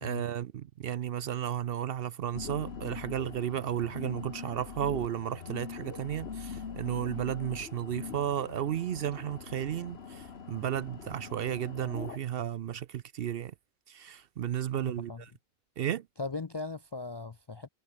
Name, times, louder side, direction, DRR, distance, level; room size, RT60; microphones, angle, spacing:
voice 1, 0.0-13.5 13.9-15.3 15.8-16.1, right 10 dB, 70° right, 0.8 m, -33 dB
sound 1, 2.3-12.2, left 6 dB, 85° left, 1.6 m, -43 dB
voice 2, 14.8-15.2 16.2-17.7, left 3 dB, 30° left, 0.5 m, -38 dB
omnidirectional pair, 1.0 m